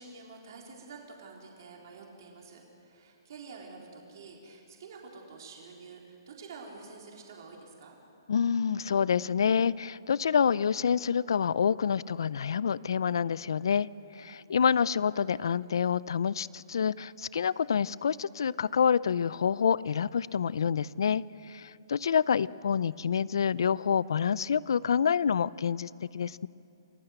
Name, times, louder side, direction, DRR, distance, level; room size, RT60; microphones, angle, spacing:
voice 1, 0.0-8.0 14.4-14.7, right 4 dB, 60° right, 0 dB, 4.0 m, -48 dB
voice 2, 8.3-13.9 14.2-26.5, left 7 dB, 75° left, 21 dB, 0.5 m, -27 dB
28.5 x 15.5 x 8.0 m, 2.7 s
hypercardioid pair, 150°, 2 cm